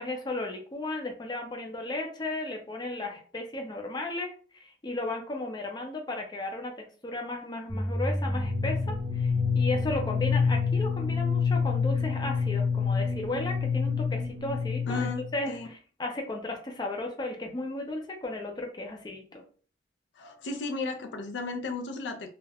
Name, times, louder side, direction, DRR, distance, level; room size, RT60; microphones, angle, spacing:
voice 1, 0.0-19.4, left 2 dB, 25° left, 2 dB, 0.4 m, -35 dB
sound 1, 7.7-15.4, left 5 dB, 40° right, 0.7 m, -27 dB
voice 2, 14.9-15.7 20.2-22.3, left 3 dB, 85° left, 6 dB, 0.4 m, -34 dB
2.3 x 2.1 x 3.3 m, 0.41 s
head